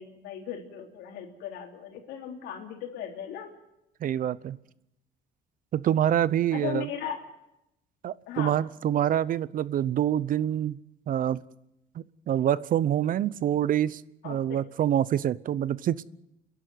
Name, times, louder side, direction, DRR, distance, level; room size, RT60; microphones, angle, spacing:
voice 1, 0.0-3.5 6.5-7.2 8.3-8.6 14.2-14.6, left 9 dB, 85° left, 3 dB, 3.5 m, -37 dB
voice 2, 4.0-4.6 5.7-6.9 8.0-10.8 11.1-11.4 12.3-16.0, right 10 dB, 55° right, 19 dB, 0.8 m, -26 dB
29.0 x 11.5 x 9.3 m, 0.85 s
cardioid pair, 110°, 17 cm